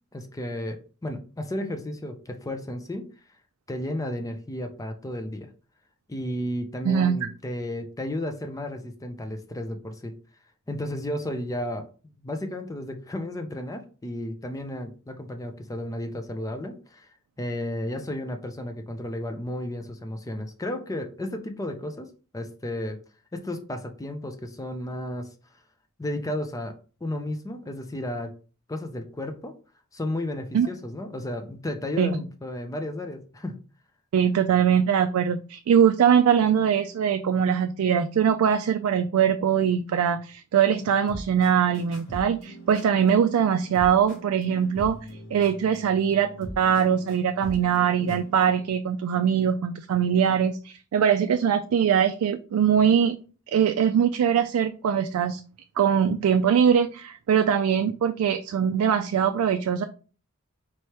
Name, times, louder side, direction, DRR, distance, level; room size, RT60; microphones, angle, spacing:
voice 1, 0.1-3.0 3.7-5.5 6.1-10.1 10.7-23.0 23.3-25.3 26.0-26.7 27.0-28.3 28.7-29.5 29.9-33.6 48.0-48.2, left 1 dB, 15° left, 6 dB, 0.5 m, -33 dB
voice 2, 6.8-7.3 30.5-30.7 32.0-32.2 34.1-45.0 45.3-53.2 53.5-55.4 55.8-59.8, right 8 dB, 80° right, 8 dB, 0.3 m, -22 dB
sound 1, 40.7-48.7, right 1 dB, 60° left, 1.4 m, -42 dB
4.4 x 3.2 x 2.9 m, 0.37 s
head